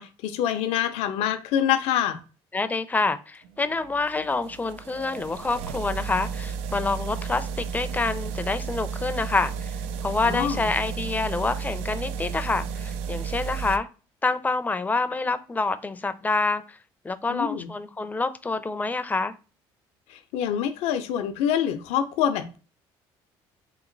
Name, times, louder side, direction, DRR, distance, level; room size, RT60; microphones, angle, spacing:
voice 1, 0.0-2.2 10.2-10.7 17.3-17.7 20.1-22.6, left 9 dB, 85° left, 8 dB, 0.5 m, -26 dB
voice 2, 2.5-9.8 10.0-13.9 14.2-16.8 17.0-19.3, left 3 dB, 15° left, 11 dB, 0.5 m, -27 dB
sound 1, 3.4-13.8, right 6 dB, 85° right, 0.4 m, -33 dB
2.9 x 2.9 x 3.9 m, 0.34 s
cardioid pair, 95°, 10 cm